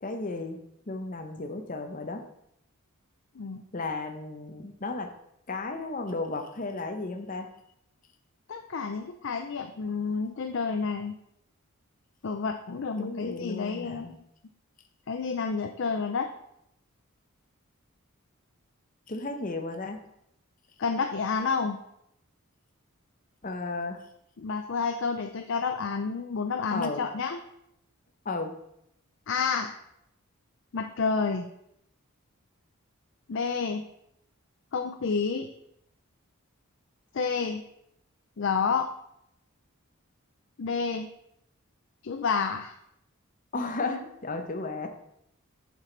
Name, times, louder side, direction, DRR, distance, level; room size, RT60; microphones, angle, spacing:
voice 1, 0.0-2.2 3.7-5.1 5.5-7.5 13.0-14.2 19.1-20.0 23.4-24.0 26.7-27.0 28.2-28.6 43.5-44.9, left 3 dB, 35° left, 5 dB, 0.8 m, -34 dB
voice 2, 8.5-11.1 12.2-14.2 15.1-16.3 20.8-21.8 24.4-27.4 29.3-29.8 30.7-31.5 33.3-33.8 34.7-35.5 37.1-37.6 38.4-38.9 40.6-41.1 42.0-42.8, left 5 dB, 60° left, 6 dB, 0.5 m, -29 dB
7.2 x 6.3 x 3.9 m, 0.77 s
head